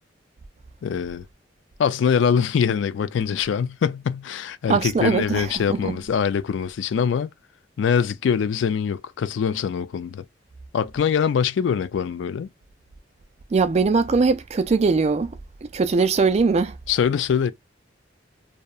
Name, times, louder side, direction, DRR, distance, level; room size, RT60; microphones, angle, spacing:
voice 1, 0.8-1.2 1.8-7.3 7.8-10.2 10.7-12.5 16.9-17.5, left 7 dB, 75° left, 0.3 m, -23 dB
voice 2, 4.7-6.0 13.5-15.3 15.6-16.8, right 4 dB, 35° right, 0.3 m, -21 dB
2.7 x 2.1 x 2.3 m
head